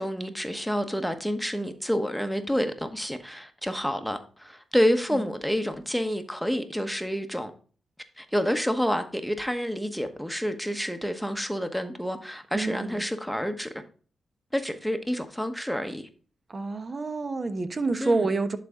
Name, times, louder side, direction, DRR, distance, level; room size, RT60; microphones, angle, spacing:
voice 1, 0.0-7.5 8.2-13.7 14.5-16.1 18.0-18.3, equal, ahead, 1.1 m, -28 dB
voice 2, 12.5-13.0 16.5-18.6, right 3 dB, 40° right, 1.1 m, -28 dB
11.0 x 4.2 x 3.7 m
cardioid pair, 55°, 0 cm